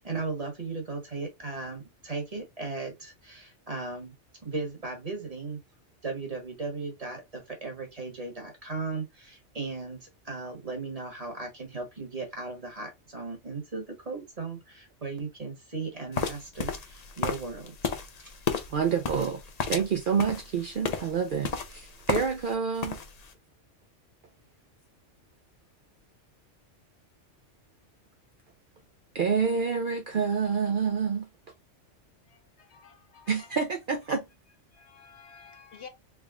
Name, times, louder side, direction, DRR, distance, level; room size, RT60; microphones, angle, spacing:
voice 1, 0.0-4.1 4.4-5.6 6.0-17.7 18.2-18.3, right 3 dB, 30° right, 1.2 m, -37 dB
sound 1, 16.1-22.5 22.8-23.3, left 6 dB, 45° left, 0.5 m, -33 dB
voice 2, 18.7-19.4 19.7-23.0 29.1-31.3 33.3-34.3, right 6 dB, 55° right, 0.6 m, -28 dB
voice 3, 32.3-33.5 34.7-35.9, left 6 dB, 70° left, 1.0 m, -51 dB
3.5 x 3.4 x 2.4 m
omnidirectional pair, 1.2 m